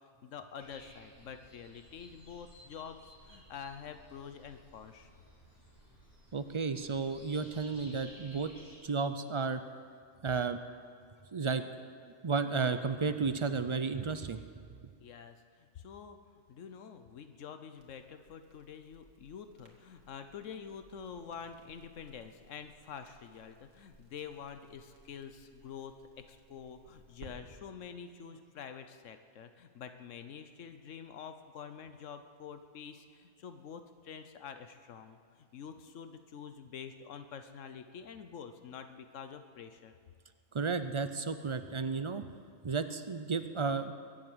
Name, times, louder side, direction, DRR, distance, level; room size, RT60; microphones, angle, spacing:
voice 1, 0.2-5.1 15.0-39.9, left 7 dB, 80° left, 9 dB, 1.1 m, -47 dB
sound 1, 0.6-8.8, equal, 15° left, 3.5 m, -57 dB
voice 2, 6.3-8.5 8.8-9.6 10.2-10.6 11.3-11.6 11.9-14.4 40.5-42.2 42.6-43.9, right 4 dB, 40° right, 10 dB, 0.4 m, -33 dB
Crackle, 17.7-27.3, right 3 dB, 90° right, 2.2 m, -61 dB
22.5 x 7.8 x 7.9 m, 2.1 s
omnidirectional pair, 1.3 m